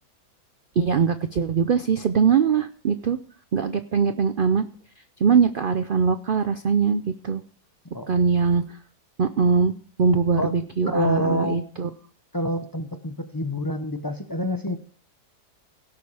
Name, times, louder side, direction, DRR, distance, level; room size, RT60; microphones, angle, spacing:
voice 1, 0.8-3.2 3.5-4.7 5.2-7.4 8.1-8.6 9.2-9.7 10.0-11.9, right 6 dB, 85° right, 11 dB, 0.4 m, -21 dB
voice 2, 10.9-11.6 12.3-14.8, equal, 30° left, 9 dB, 0.4 m, -27 dB
17.0 x 7.1 x 4.8 m, 0.43 s
omnidirectional pair, 1.7 m